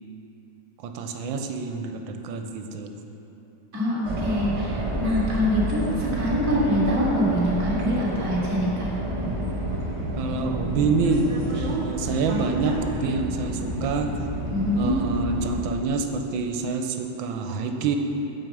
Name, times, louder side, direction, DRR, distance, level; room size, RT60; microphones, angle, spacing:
voice 1, 0.8-3.0 10.1-14.1 14.7-18.0, right 4 dB, 80° right, 5 dB, 1.4 m, -27 dB
voice 2, 3.7-8.9 14.5-14.9, equal, 10° right, -7 dB, 1.3 m, -24 dB
sound 1, 4.0-15.7, right 1 dB, 45° right, 0.4 m, -30 dB
7.6 x 5.2 x 7.3 m, 2.9 s
omnidirectional pair, 2.2 m